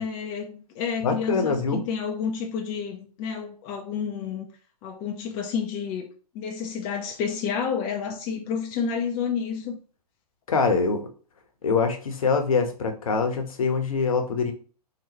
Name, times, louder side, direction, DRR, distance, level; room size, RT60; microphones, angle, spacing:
voice 1, 0.0-4.5 4.8-6.1 6.3-9.8, left 6 dB, 20° left, 0.5 m, -30 dB
voice 2, 1.0-1.8 10.5-11.1 11.6-14.5, left 4 dB, 55° left, 0.9 m, -24 dB
3.8 x 3.0 x 2.9 m
figure-of-eight pair, 115°, 21 cm